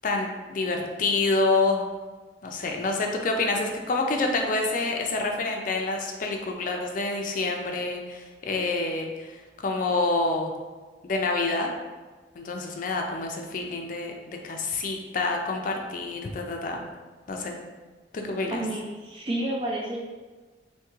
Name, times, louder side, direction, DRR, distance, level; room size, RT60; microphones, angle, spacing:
voice 1, 0.0-1.9 2.4-10.5 11.0-11.7 12.3-16.8 17.3-17.6 18.1-18.6, left 3 dB, 45° left, 2 dB, 0.4 m, -27 dB
voice 2, 18.5-20.0, right 1 dB, 30° right, -2 dB, 0.3 m, -30 dB
3.1 x 2.8 x 3.4 m, 1.3 s
head